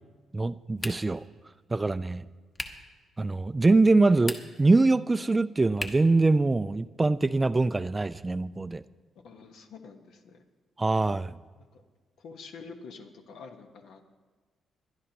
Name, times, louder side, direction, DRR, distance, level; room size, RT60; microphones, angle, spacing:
voice 1, 0.3-1.2 1.7-2.2 3.2-8.8 10.8-11.4, right 3 dB, 20° right, 15 dB, 0.3 m, -23 dB
sound 1, 0.8-1.3 2.5-2.9 4.1-4.7 5.8-6.2, left 1 dB, 25° left, 1.1 m, -37 dB
voice 2, 9.2-10.4 11.6-11.8 12.2-14.0, left 4 dB, 80° left, 5 dB, 1.3 m, -47 dB
22.0 x 11.5 x 3.0 m, 1.4 s
cardioid pair, 110°, 0 cm